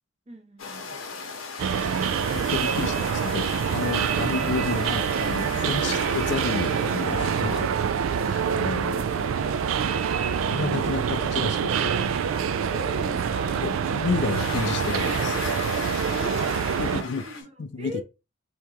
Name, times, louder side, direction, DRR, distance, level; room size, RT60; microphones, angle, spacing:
voice 1, 0.3-1.0 4.2-4.4 5.8-6.0 12.3-13.6 15.7-17.5 17.8-18.0, left 1 dB, 30° right, 0.8 m, -39 dB
sound 1, 0.6-17.4, left 4 dB, 80° left, 0.8 m, -38 dB
sound 2, 1.6-17.0, right 7 dB, 80° right, 0.3 m, -26 dB
voice 2, 2.3-7.7 8.2-9.1 10.5-12.0 13.6-15.4 16.8-17.3 17.6-18.0, left 4 dB, 60° left, 0.4 m, -31 dB
2.9 x 2.9 x 3.4 m
head